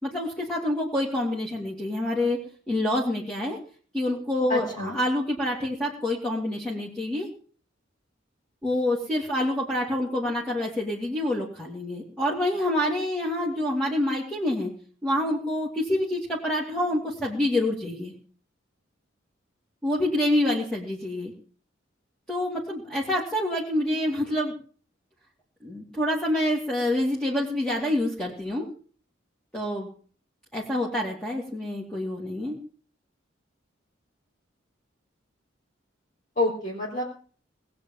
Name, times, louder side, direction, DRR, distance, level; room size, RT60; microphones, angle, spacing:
voice 1, 0.0-2.4 2.7-3.6 3.9-7.3 8.6-14.7 15.0-18.1 19.8-21.3 22.3-24.5 25.6-28.7 29.5-29.9 30.5-32.6, left 1 dB, 5° left, -4 dB, 2.7 m, -27 dB
voice 2, 4.5-5.0 36.4-37.0, left 2 dB, 40° left, -4 dB, 3.7 m, -27 dB
19.5 x 7.8 x 7.3 m, 0.43 s
head